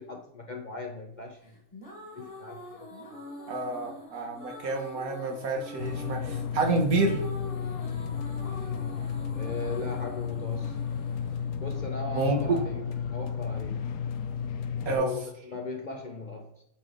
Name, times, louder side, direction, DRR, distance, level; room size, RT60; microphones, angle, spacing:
voice 1, 0.0-1.6 2.1-2.9 9.3-10.8 11.6-13.9 14.9-16.6, left 3 dB, 45° left, 1 dB, 0.6 m, -39 dB
sound 1, 1.5-12.5, left 1 dB, 20° left, 1.8 m, -45 dB
voice 2, 3.5-7.2 12.1-12.6 14.8-15.1, right 3 dB, 80° right, 2 dB, 1.7 m, -28 dB
sound 2, 5.8-15.0, left 7 dB, 85° left, 1.1 m, -33 dB
8.2 x 3.4 x 3.8 m, 0.78 s
omnidirectional pair, 1.5 m